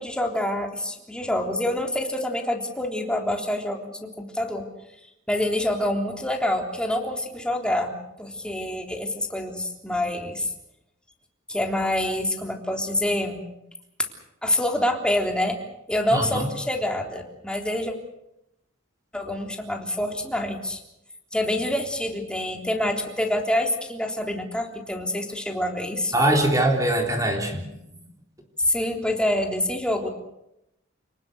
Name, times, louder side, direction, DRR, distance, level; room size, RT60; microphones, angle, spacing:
voice 1, 0.0-4.6 5.3-10.5 11.5-13.4 14.4-15.6 15.9-17.9 19.1-20.8 21.3-26.1 28.6-30.1, left 1 dB, 5° left, 2 dB, 3.5 m, -26 dB
voice 2, 16.1-16.5 26.1-27.7, right 1 dB, 15° right, 1 dB, 3.7 m, -22 dB
29.0 x 19.5 x 6.8 m, 0.85 s
head